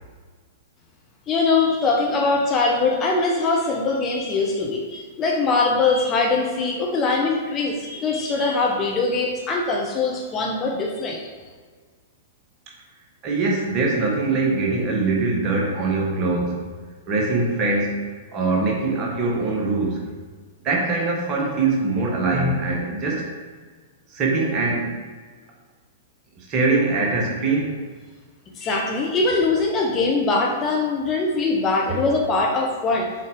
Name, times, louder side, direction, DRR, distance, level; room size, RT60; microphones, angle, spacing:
voice 1, 1.3-11.3 28.5-33.1, left 3 dB, 25° left, 0 dB, 0.9 m, -22 dB
voice 2, 13.2-16.6 17.1-18.0 18.3-20.0 20.6-23.3 24.1-24.9 26.4-27.7, right 3 dB, 35° right, -2 dB, 1.3 m, -22 dB
6.2 x 4.4 x 3.7 m, 1.5 s
figure-of-eight pair, 105°, 0 cm